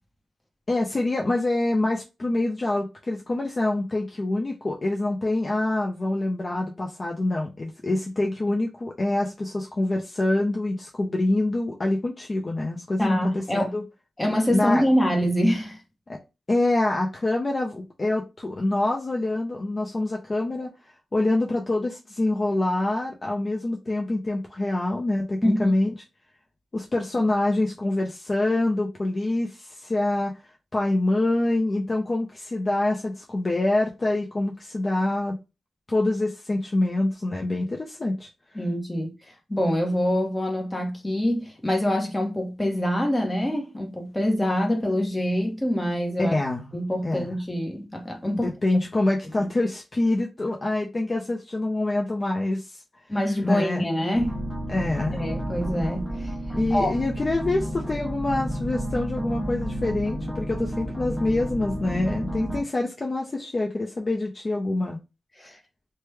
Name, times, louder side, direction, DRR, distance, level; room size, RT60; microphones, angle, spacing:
voice 1, 0.7-13.8 14.5-14.9 16.1-16.2 16.5-20.7 21.1-25.9 26.7-35.4 35.9-38.6 46.2-46.7 47.0-47.3 48.4-52.8 53.4-53.9 54.7-55.3 56.5-65.0, left 2 dB, 35° left, 0.6 m, -26 dB
voice 2, 13.0-13.7 14.2-15.8 25.4-25.7 38.5-39.1 39.5-46.4 46.7-48.5 49.4-49.5 53.1-54.4 55.1-56.9 65.4-65.6, equal, 15° left, 1.1 m, -25 dB
sound 1, 54.1-62.6, equal, 5° right, 0.6 m, -31 dB
3.0 x 2.2 x 3.3 m
cardioid pair, 70°, 0 cm